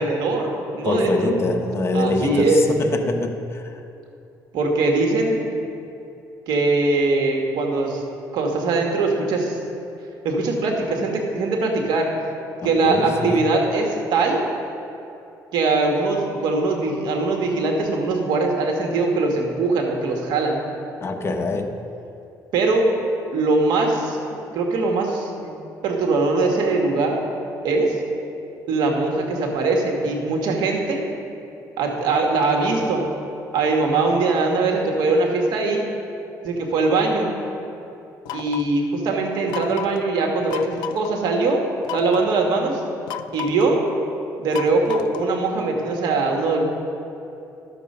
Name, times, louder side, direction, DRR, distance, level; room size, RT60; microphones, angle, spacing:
voice 1, 0.0-1.4 1.9-2.6 4.5-5.4 6.5-8.0 8.3-9.6 10.2-12.1 12.6-14.4 15.5-20.6 22.5-22.9 23.3-25.5 25.8-27.2 27.6-28.0 28.7-31.0 31.8-33.1 33.5-35.8 36.4-37.3 38.3-41.6 41.9-42.8 43.3-43.9 44.4-46.6, right 3 dB, 75° right, 1 dB, 1.6 m, -21 dB
voice 2, 0.8-3.8 12.6-13.4 21.0-21.7, left 2 dB, 35° left, 4 dB, 0.9 m, -24 dB
sound 1, 38.3-38.8 39.5-40.0 40.5-41.1 41.8-42.3 43.1-43.7 44.5-45.4, left 11 dB, 90° left, 0.4 m, -33 dB
12.0 x 7.1 x 5.5 m, 2.8 s
cardioid pair, 105°, 7 cm